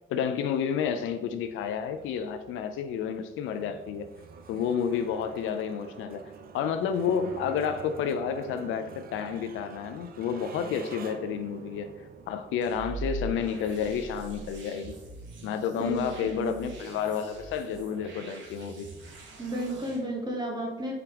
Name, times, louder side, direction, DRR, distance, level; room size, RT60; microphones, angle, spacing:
voice 1, 0.1-4.1 4.5-6.2 6.5-11.9 12.3-15.0 15.4-18.9, left 7 dB, 80° left, 8 dB, 0.4 m, -30 dB
sound 1, 0.7-20.0, right 6 dB, 50° right, 0.5 m, -49 dB
sound 2, 12.6-20.0, right 1 dB, 70° right, 1.0 m, -42 dB
voice 2, 15.8-16.7 19.4-20.9, right 1 dB, 20° right, 0 dB, 1.1 m, -33 dB
4.8 x 3.4 x 2.9 m, 1.0 s
cardioid pair, 90°, 20 cm